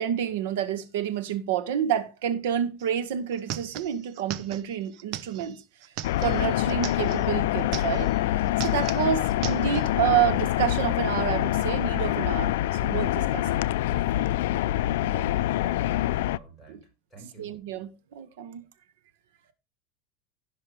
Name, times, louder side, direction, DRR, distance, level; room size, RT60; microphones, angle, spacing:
voice 1, 0.0-5.6 6.2-13.7 16.7-16.8 17.4-18.6, right 9 dB, 80° right, 1.6 m, -29 dB
sound 1, 2.8-2.9 3.1-7.3 7.6-8.2 8.5-9.9, right 12 dB, 45° right, 0.7 m, -38 dB
sound 2, 6.0-16.4, left 14 dB, 75° left, 0.4 m, -25 dB
voice 2, 13.8-17.5, right 3 dB, ahead, 6.2 m, -47 dB
16.5 x 5.8 x 3.4 m
supercardioid pair, 165°, 0 cm